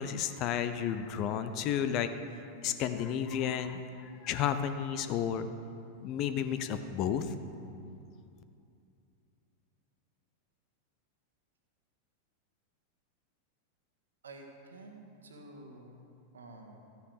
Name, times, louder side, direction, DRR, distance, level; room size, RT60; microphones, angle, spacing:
voice 1, 0.0-2.1 2.6-5.5 6.0-7.3, left 9 dB, 40° left, 10 dB, 0.7 m, -32 dB
voice 2, 14.2-16.0 16.3-16.8, right 2 dB, 70° right, 2 dB, 1.6 m, -50 dB
13.5 x 9.5 x 5.1 m, 2.5 s
figure-of-eight pair, 90°, 0 cm